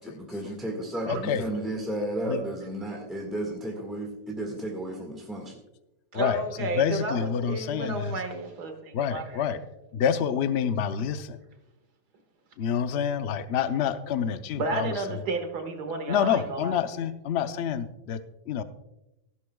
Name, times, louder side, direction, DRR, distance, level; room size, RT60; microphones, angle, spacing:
voice 1, 0.0-5.6, right 1 dB, ahead, 0 dB, 1.5 m, -33 dB
voice 2, 1.1-1.4 2.3-2.4 6.1-8.2 8.9-9.6 9.9-11.4 12.6-15.0 16.1-18.6, left 8 dB, 55° left, 10 dB, 0.7 m, -28 dB
voice 3, 6.1-9.5 14.6-16.8, right 2 dB, 75° right, 5 dB, 2.2 m, -32 dB
15.5 x 12.0 x 2.3 m, 0.93 s
omnidirectional pair, 1.7 m